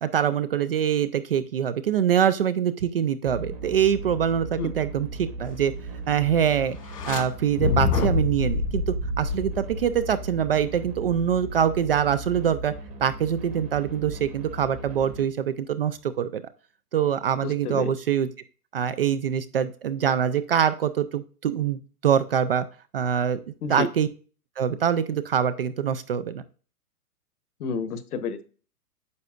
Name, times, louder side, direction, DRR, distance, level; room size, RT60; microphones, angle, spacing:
voice 1, 0.0-5.7 6.1-6.8 7.1-12.7 13.0-16.4 16.9-18.3 18.7-22.7 22.9-23.4 23.7-24.1 24.6-26.4, right 8 dB, 40° right, 13 dB, 0.4 m, -24 dB
sound 1, 3.2-15.2, right 4 dB, 15° right, 1.0 m, -37 dB
sound 2, 6.8-7.2 7.6-10.1, left 5 dB, 85° left, 2.4 m, -26 dB
voice 2, 17.4-17.9 23.6-23.9 27.6-28.4, left 5 dB, 70° left, 12 dB, 1.3 m, -30 dB
9.5 x 6.6 x 2.4 m, 0.38 s
hypercardioid pair, 150°, 47 cm